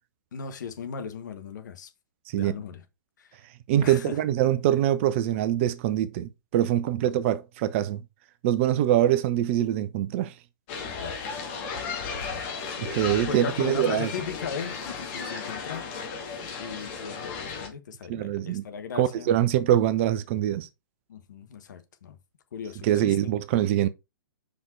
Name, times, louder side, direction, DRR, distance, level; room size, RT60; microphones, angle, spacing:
voice 1, 0.3-1.9 2.3-2.8 3.2-3.4 3.8-4.2 10.8-11.2 13.3-15.9 16.6-19.3 21.1-22.2 22.5-23.3, left 6 dB, 55° left, 1.3 m, -37 dB
voice 2, 3.7-8.0 8.4-10.3 12.8-14.1 18.1-18.6 18.9-20.7 22.8-23.9, right 12 dB, 35° right, 0.6 m, -24 dB
sound 1, 10.7-17.7, left 5 dB, 35° left, 2.2 m, -35 dB
5.8 x 5.1 x 4.6 m
figure-of-eight pair, 115°, 12 cm